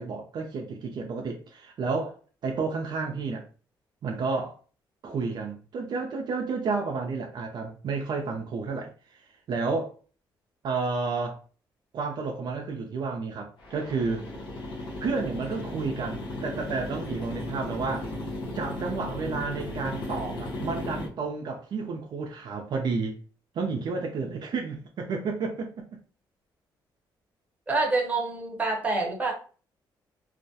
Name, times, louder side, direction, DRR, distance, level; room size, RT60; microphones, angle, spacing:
voice 1, 0.0-3.5 4.0-4.6 5.0-9.2 9.5-9.9 10.6-11.4 11.9-14.3 15.0-18.2 18.5-23.2 23.5-25.9, right 4 dB, 60° right, 0.4 m, -31 dB
sound 1, 13.6-21.1, left 2 dB, 70° left, 0.8 m, -35 dB
voice 2, 27.7-29.3, right 3 dB, 20° right, 0.9 m, -26 dB
2.3 x 2.0 x 2.7 m
cardioid pair, 90°, 9 cm